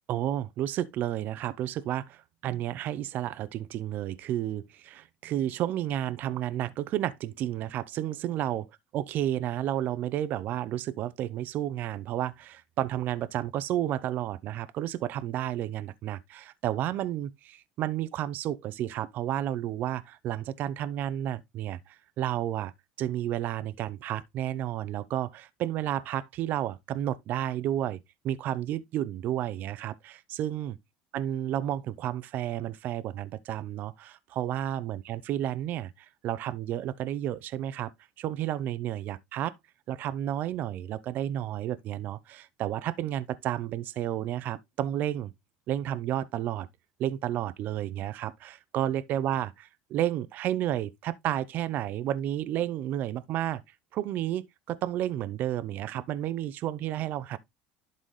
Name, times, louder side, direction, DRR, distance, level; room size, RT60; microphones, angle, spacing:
voice 1, 0.1-8.7 8.9-22.7 23.0-28.0 28.2-30.8 31.1-37.9 38.2-39.5 39.9-45.3 45.7-46.7 47.0-53.6 53.9-57.4, right 12 dB, 55° right, 0.6 m, -31 dB
11.0 x 4.0 x 3.1 m
supercardioid pair, 110°, 4 cm